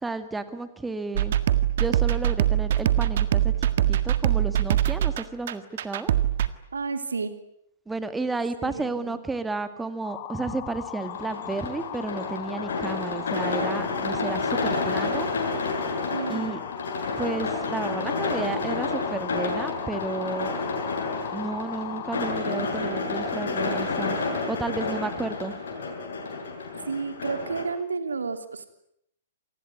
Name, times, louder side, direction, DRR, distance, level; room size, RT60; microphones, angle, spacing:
voice 1, 0.0-1.4 1.8-6.1 7.9-15.3 16.3-16.6 17.2-20.5 21.3-24.2 24.5-25.5, right 3 dB, 5° right, 11 dB, 2.1 m, -32 dB
sound 1, 1.2-6.5, right 11 dB, 50° right, 1.7 m, -23 dB
voice 2, 6.7-7.3 8.6-9.2 16.1-16.6 26.9-28.7, right 4 dB, 70° right, 9 dB, 3.1 m, -31 dB
sound 2, 10.0-22.4, left 11 dB, 35° left, 2.6 m, -38 dB
sound 3, 11.0-27.6, left 3 dB, 60° left, 6.8 m, -30 dB
27.5 x 20.0 x 9.8 m, 0.75 s
figure-of-eight pair, 110°, 0 cm